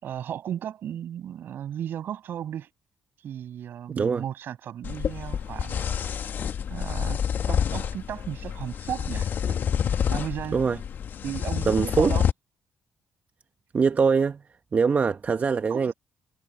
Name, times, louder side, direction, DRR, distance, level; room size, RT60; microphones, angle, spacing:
voice 1, 0.0-2.7 3.2-5.8 6.7-7.2 7.5-9.6 10.1-10.6 11.2-12.3 15.7-15.9, right 10 dB, 70° right, 7.4 m, -35 dB
sound 1, 4.8-12.3, left 8 dB, 60° left, 1.6 m, -28 dB
voice 2, 11.7-12.1 13.7-14.4 14.7-15.9, right 5 dB, 45° right, 1.0 m, -22 dB
supercardioid pair, 55°, 4 cm